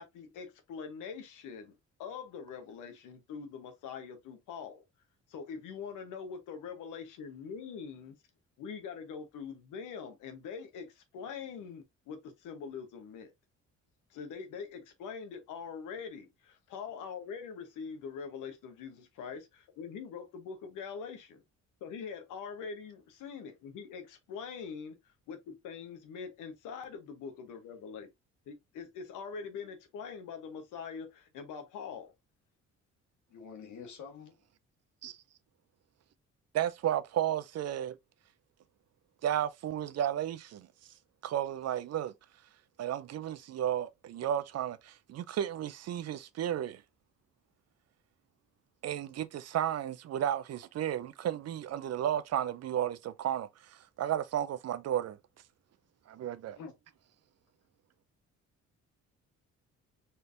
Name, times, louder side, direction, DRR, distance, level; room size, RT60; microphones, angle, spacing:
voice 1, 0.0-1.7 2.0-4.8 5.3-8.1 8.6-13.3 14.1-21.4 21.8-25.0 25.3-28.1 28.5-32.1, left 6 dB, 90° left, 1.1 m, -43 dB
voice 2, 33.3-34.4 35.0-35.1 56.6-56.7, left 6 dB, 75° left, 1.6 m, -47 dB
voice 3, 36.5-38.0 39.2-40.7 41.2-42.1 42.8-46.8 48.8-55.2 56.1-56.6, right 11 dB, 55° right, 0.5 m, -33 dB
4.4 x 3.3 x 2.6 m
cardioid pair, 90°, 30 cm